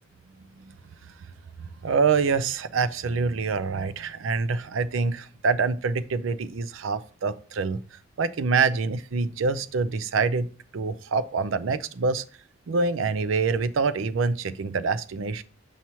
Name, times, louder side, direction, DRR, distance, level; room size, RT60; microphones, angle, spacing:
voice 1, 1.6-7.8 8.2-10.5 10.7-12.2 12.7-15.4, right 4 dB, 85° right, 14 dB, 0.5 m, -26 dB
7.0 x 3.0 x 5.5 m, 0.40 s
head